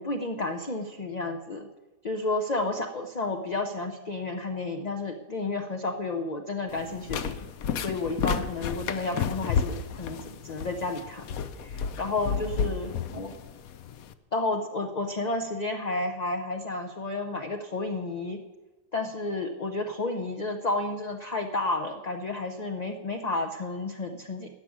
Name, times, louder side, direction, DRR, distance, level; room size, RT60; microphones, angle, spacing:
voice 1, 0.0-1.7 2.0-7.4 7.8-11.2 11.6-13.4 14.3-18.4 18.9-24.5, left 2 dB, 40° left, 4 dB, 0.6 m, -31 dB
sound 1, 6.7-14.1, left 6 dB, 70° left, 1.1 m, -32 dB
14.5 x 6.1 x 9.7 m, 1.2 s
omnidirectional pair, 1.7 m